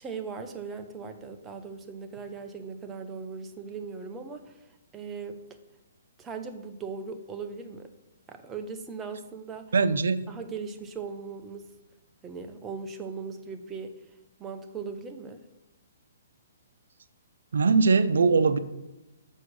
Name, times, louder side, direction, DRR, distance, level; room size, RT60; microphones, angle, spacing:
voice 1, 0.0-4.7 4.9-5.6 6.2-7.9 8.3-9.7 10.3-11.7 12.2-13.9 14.4-15.4, right 5 dB, 15° right, 6 dB, 0.7 m, -39 dB
voice 2, 9.7-10.2 17.5-18.6, right 4 dB, 75° right, 11 dB, 0.6 m, -21 dB
6.1 x 4.4 x 6.1 m, 1.0 s
hypercardioid pair, 150°, 0 cm